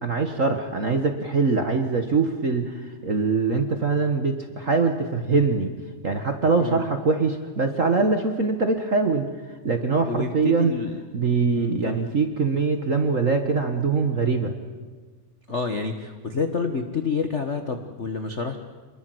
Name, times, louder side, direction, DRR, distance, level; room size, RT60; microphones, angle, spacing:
voice 1, 0.0-5.7 6.0-9.3 9.6-10.7 11.1-14.5, right 4 dB, 40° right, 5 dB, 1.1 m, -23 dB
voice 2, 10.1-11.0 11.5-12.0 15.5-18.6, left 5 dB, 75° left, 6 dB, 0.6 m, -29 dB
26.5 x 21.5 x 7.9 m, 1.4 s
omnidirectional pair, 3.4 m